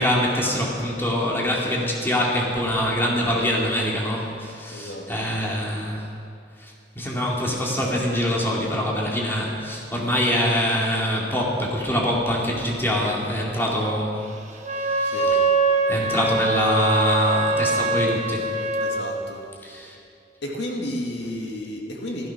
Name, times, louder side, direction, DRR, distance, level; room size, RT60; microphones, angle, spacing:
voice 1, 0.0-6.1 6.6-14.2 14.7-15.4 15.9-18.5 19.6-20.0, equal, 15° left, -3 dB, 2.4 m, -24 dB
voice 2, 4.7-5.3 15.1-15.3 18.8-19.4 20.4-22.3, left 1 dB, 75° left, 0 dB, 2.0 m, -32 dB
Wind instrument woodwind instrument, 14.6-19.1, right 3 dB, 45° right, 1.2 m, -23 dB
15.0 x 13.0 x 5.9 m, 2.4 s
head